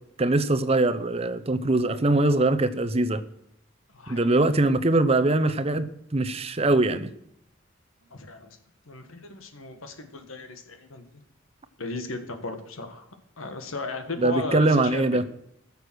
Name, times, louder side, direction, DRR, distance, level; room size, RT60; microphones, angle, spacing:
voice 1, 0.2-3.2 4.1-7.1 14.2-15.2, right 2 dB, 30° right, 0.7 m, -22 dB
voice 2, 3.9-4.7 8.1-8.6 8.9-11.0 11.8-13.1 13.4-15.2, left 3 dB, 85° left, 1.8 m, -35 dB
14.5 x 6.9 x 6.3 m
head